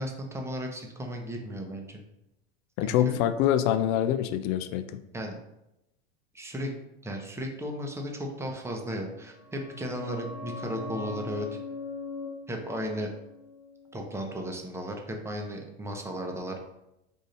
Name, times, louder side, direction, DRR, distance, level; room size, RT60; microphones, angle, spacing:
voice 1, 0.0-2.0 2.8-3.2 5.1-5.4 6.3-6.7 7.0-11.5 12.5-13.1 13.9-16.6, equal, 10° right, 2 dB, 0.7 m, -35 dB
voice 2, 2.8-5.0, left 11 dB, 50° left, 12 dB, 0.5 m, -25 dB
sound 1, 9.2-14.6 14.9-15.0, left 3 dB, 60° right, 1.0 m, -41 dB
5.0 x 2.7 x 4.0 m, 0.89 s
hypercardioid pair, 100°, 31 cm